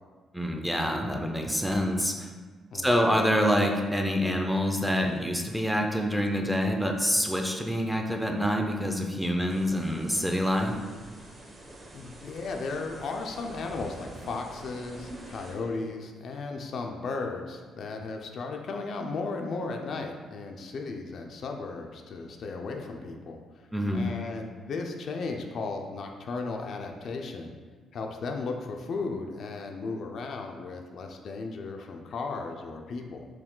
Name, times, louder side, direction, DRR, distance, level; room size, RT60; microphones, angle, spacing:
voice 1, 0.3-2.3 2.7-10.7 23.7-24.1, equal, ahead, 2 dB, 0.5 m, -26 dB
voice 2, 2.7-3.1 11.9-23.7 23.9-27.5 27.9-33.3, left 3 dB, 60° left, 3 dB, 0.4 m, -35 dB
sound 1, 9.5-15.5, right 1 dB, 35° right, 0.8 m, -47 dB
sound 2, 13.5-16.0, right 1 dB, 85° right, 1.4 m, -47 dB
4.6 x 2.2 x 3.7 m, 1.4 s
cardioid pair, 90°, 0 cm